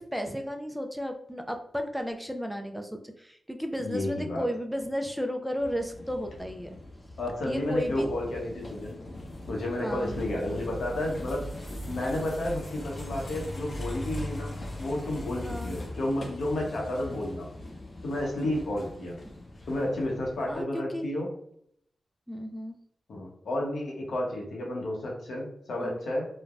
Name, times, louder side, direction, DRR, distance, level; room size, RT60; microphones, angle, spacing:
voice 1, 0.0-6.8 7.4-8.1 9.8-10.2 15.4-15.8 20.5-21.1 22.3-22.8 25.8-26.0, equal, 5° right, 4 dB, 0.3 m, -33 dB
voice 2, 3.8-4.4 7.2-9.0 9.5-11.5 11.8-17.5 18.0-19.2 19.7-21.3 23.1-26.3, left 1 dB, 85° left, -2 dB, 0.9 m, -31 dB
sound 1, 5.6-20.6, left 1 dB, 45° left, 0.6 m, -40 dB
3.2 x 2.1 x 2.4 m, 0.70 s
wide cardioid pair, 100°, 0 cm